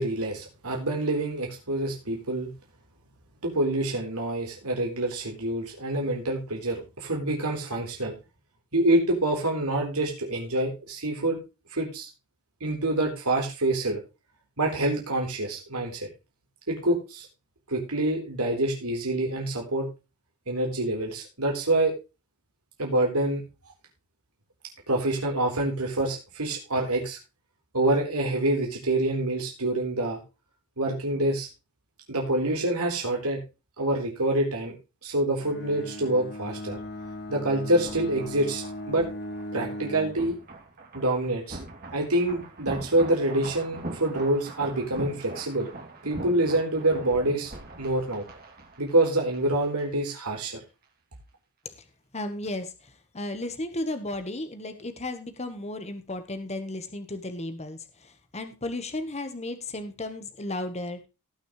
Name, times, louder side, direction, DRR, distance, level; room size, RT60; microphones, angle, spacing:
voice 1, 0.0-2.5 3.4-8.1 8.7-11.4 11.7-12.1 12.6-14.0 14.6-16.1 16.7-17.3 17.7-19.9 20.5-21.9 22.8-23.4 24.9-27.2 27.7-30.2 30.8-31.5 32.1-33.4 33.8-34.8 35.0-36.8 37.3-39.1 39.5-40.4 40.9-41.6 41.9-45.7 46.0-47.5 47.8-48.2 48.8-50.6, right 1 dB, 90° right, 0 dB, 4.0 m, -26 dB
Bowed string instrument, 35.4-40.3, left 1 dB, 50° left, 1.9 m, -38 dB
sound 1, 36.3-50.1 50.4-50.5, right 2 dB, 45° right, 3.0 m, -42 dB
voice 2, 52.1-61.1, left 2 dB, 30° left, 9 dB, 1.3 m, -34 dB
18.5 x 6.4 x 3.2 m, 0.29 s
head